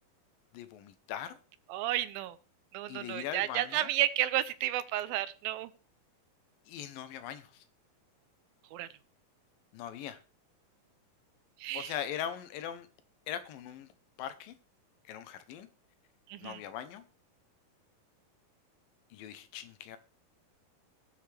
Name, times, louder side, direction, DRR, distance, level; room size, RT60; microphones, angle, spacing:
voice 1, 0.5-1.4 2.9-3.9 6.7-7.6 9.7-10.2 11.7-12.9 13.3-13.9 14.2-14.6 15.0-15.7 16.4-17.0 19.1-20.0, left 10 dB, 80° left, 2.5 m, -40 dB
voice 2, 1.7-2.4 2.7-5.7 8.7-8.9 11.6-11.9 16.3-16.6, right 13 dB, 85° right, 2.5 m, -32 dB
18.0 x 6.9 x 3.3 m
omnidirectional pair, 4.1 m